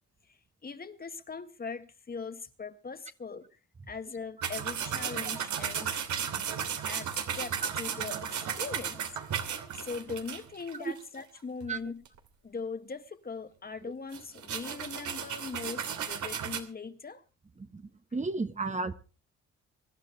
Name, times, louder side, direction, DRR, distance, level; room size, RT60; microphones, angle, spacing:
voice 1, 0.3-3.6 3.9-6.0 6.8-9.0 9.7-12.0 12.4-17.2, left 4 dB, 30° left, 1.6 m, -40 dB
sound 1, 4.4-11.2 11.6-11.7 12.0-12.2 14.1-16.6, right 8 dB, 75° right, 2.8 m, -34 dB
voice 2, 18.1-18.9, right 3 dB, 25° right, 1.3 m, -32 dB
24.5 x 12.0 x 3.3 m
cardioid pair, 90°, 30 cm